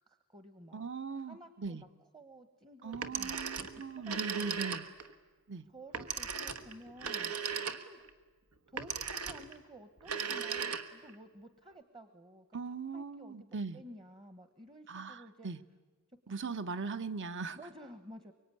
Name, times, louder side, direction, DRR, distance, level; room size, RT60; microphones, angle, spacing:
voice 1, 0.0-0.9 1.2-1.9 2.1-4.7 5.7-7.3 7.7-8.0 8.7-13.5 13.7-15.5 17.6-18.3, equal, 20° right, 10 dB, 1.1 m, -53 dB
voice 2, 0.7-1.8 2.8-4.9 5.5-5.6 12.5-13.8 14.9-15.6 16.3-17.6, right 4 dB, 55° right, 12 dB, 0.9 m, -39 dB
Telephone, 2.9-5.1 5.9-8.1 8.8-9.6 10.0-11.2, right 6 dB, 90° right, 1.4 m, -37 dB
24.0 x 23.5 x 9.7 m, 1.3 s
head